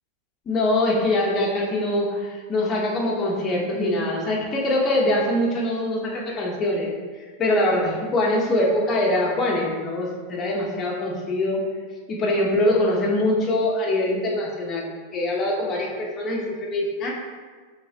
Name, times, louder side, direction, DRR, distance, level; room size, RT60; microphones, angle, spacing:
voice 1, 0.5-6.9 7.4-11.6 12.1-14.9 15.1-17.1, left 1 dB, 30° left, -2 dB, 1.1 m, -23 dB
5.2 x 3.3 x 2.9 m, 1.5 s
hypercardioid pair, 105°, 0 cm